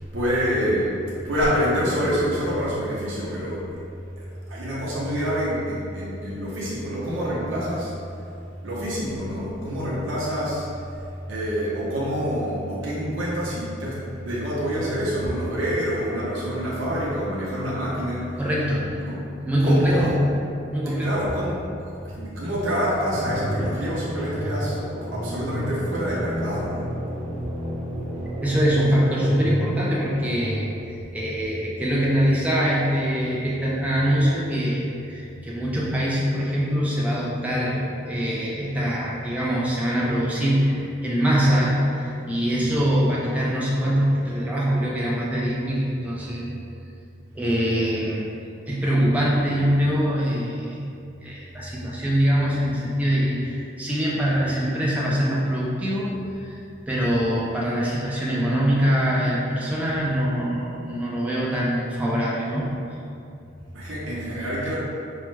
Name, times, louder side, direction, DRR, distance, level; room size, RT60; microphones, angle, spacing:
voice 1, 0.1-0.9 1.2-3.8 4.2-7.9 8.6-10.7 11.3-18.3 19.0-19.2 19.6-20.2 20.9-26.9 42.7-42.8 63.7-64.7, equal, 80° right, -7 dB, 0.7 m, -27 dB
voice 2, 18.4-18.9 19.4-20.4 20.7-21.1 23.8-23.9 28.4-30.7 31.1-46.5 47.3-48.3 48.7-50.9 51.2-56.1 56.5-56.6 56.9-62.7, equal, 10° right, -6 dB, 0.4 m, -23 dB
sound 1, 23.1-30.6, equal, 35° right, 1.0 m, -31 dB
4.6 x 2.1 x 3.1 m, 2.5 s
head